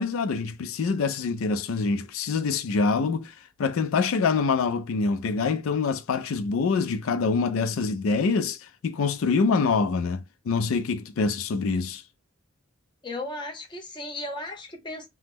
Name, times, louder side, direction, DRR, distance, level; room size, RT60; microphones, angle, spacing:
voice 1, 0.0-3.3 3.6-12.0, left 4 dB, 90° left, 0.4 m, -25 dB
voice 2, 13.0-15.1, left 2 dB, 25° left, 0.6 m, -35 dB
2.9 x 2.0 x 3.4 m
head